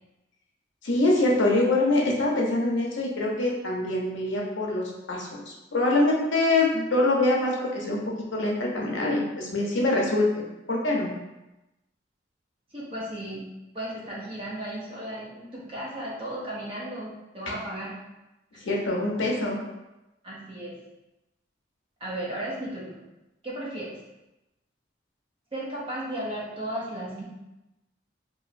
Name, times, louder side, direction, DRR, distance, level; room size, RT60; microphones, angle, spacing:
voice 1, 0.8-10.3 10.7-11.1 18.6-19.6, left 2 dB, 80° left, -2 dB, 0.7 m, -24 dB
voice 2, 12.7-13.4 13.7-18.0 18.5-18.9 20.2-20.8 22.0-23.0 23.4-24.0 25.5-27.2, right 1 dB, 30° right, -6 dB, 0.5 m, -35 dB
2.9 x 2.5 x 2.5 m, 0.98 s
head